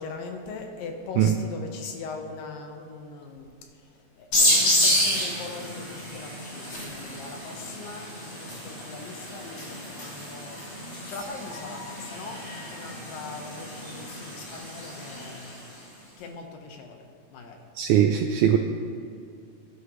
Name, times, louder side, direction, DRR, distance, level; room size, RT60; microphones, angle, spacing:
voice 1, 0.0-17.1 17.3-17.6, left 4 dB, 75° left, 3 dB, 2.8 m, -41 dB
sound 1, 4.3-15.7, left 1 dB, 55° left, 4.7 m, -29 dB
sound 2, 6.6-7.5 10.9-11.9, left 1 dB, 30° left, 2.6 m, -47 dB
voice 2, 17.8-18.6, right 9 dB, 80° right, 4 dB, 1.8 m, -20 dB
21.0 x 11.0 x 3.2 m, 2.3 s
omnidirectional pair, 4.1 m